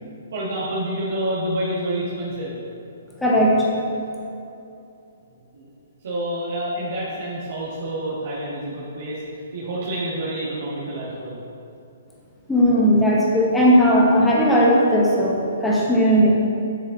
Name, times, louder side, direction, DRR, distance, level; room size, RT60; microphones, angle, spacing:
voice 1, 0.3-2.6 5.5-5.7 6.0-9.2 9.5-11.4, right 1 dB, 70° right, -9 dB, 2.0 m, -28 dB
voice 2, 3.2-3.7 12.5-16.3, equal, 5° left, -6 dB, 1.4 m, -17 dB
8.2 x 6.3 x 4.0 m, 2.7 s
hypercardioid pair, 155°, 0 cm